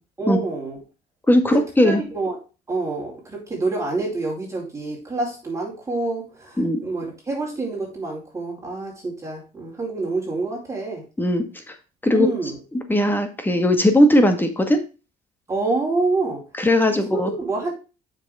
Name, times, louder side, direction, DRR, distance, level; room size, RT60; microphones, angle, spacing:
voice 1, 0.2-0.8 1.5-2.4 2.7-11.0 12.1-12.6 15.5-16.4 16.9-17.7, right 3 dB, 20° right, -4 dB, 4.6 m, -27 dB
voice 2, 1.3-2.0 6.6-6.8 11.2-11.4 12.0-12.3 12.9-14.8 16.6-17.3, left 1 dB, 10° left, 6 dB, 1.8 m, -18 dB
7.1 x 6.6 x 3.6 m, 0.32 s
cardioid pair, 110°, 17 cm